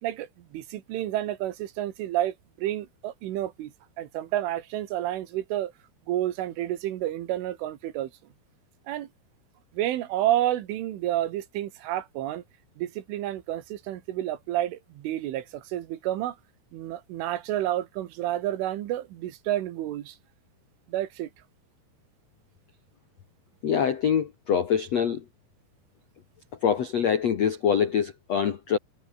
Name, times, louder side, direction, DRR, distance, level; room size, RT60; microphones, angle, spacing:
voice 1, 0.0-5.7 6.1-8.1 8.9-9.1 9.7-12.4 12.8-16.4 16.7-20.2 20.9-21.3, right 13 dB, 80° right, 4.1 m, -30 dB
voice 2, 23.6-25.2 26.6-28.8, left 8 dB, 80° left, 1.5 m, -24 dB
omnidirectional pair, 5.7 m